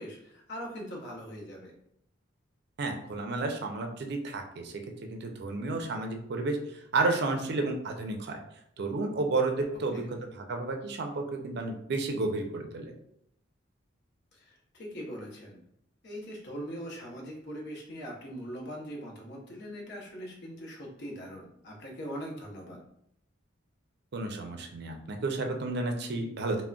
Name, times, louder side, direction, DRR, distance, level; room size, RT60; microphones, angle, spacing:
voice 1, 0.0-1.7 9.9-10.1 14.3-15.6 16.0-22.8, equal, 60° left, -1 dB, 0.7 m, -41 dB
voice 2, 2.8-4.8 5.1-8.4 8.8-12.9 24.1-26.6, right 3 dB, 60° right, 4 dB, 0.4 m, -31 dB
3.6 x 2.1 x 2.3 m, 0.72 s
head